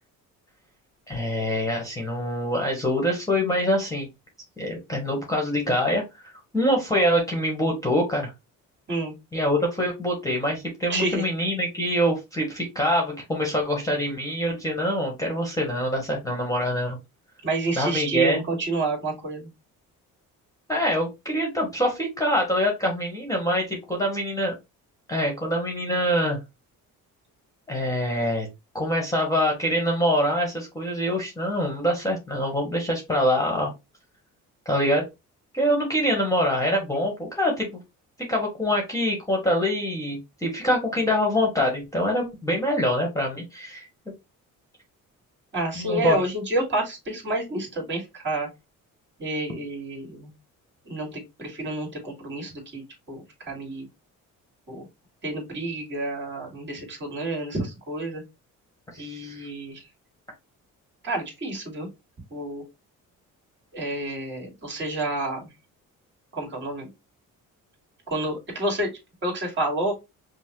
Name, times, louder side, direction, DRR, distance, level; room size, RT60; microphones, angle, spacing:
voice 1, 1.1-4.1 4.6-6.0 6.5-8.3 9.3-17.0 17.7-18.4 20.7-24.5 25.1-26.4 27.7-28.5 28.7-33.7 34.6-35.0 35.5-37.8 38.3-43.9 45.8-46.2 58.9-59.5, equal, 10° left, 0 dB, 1.1 m, -25 dB
voice 2, 10.9-11.2 17.4-19.5 45.5-48.5 49.2-50.3 50.9-52.8 53.1-53.9 54.7-54.8 55.2-58.2 59.0-59.8 61.0-61.9 62.3-62.6 63.7-65.5 66.3-66.9 68.1-68.9 69.2-69.9, right 2 dB, 35° right, 0 dB, 2.0 m, -29 dB
5.4 x 2.0 x 3.0 m, 0.23 s
cardioid pair, 140°, 33 cm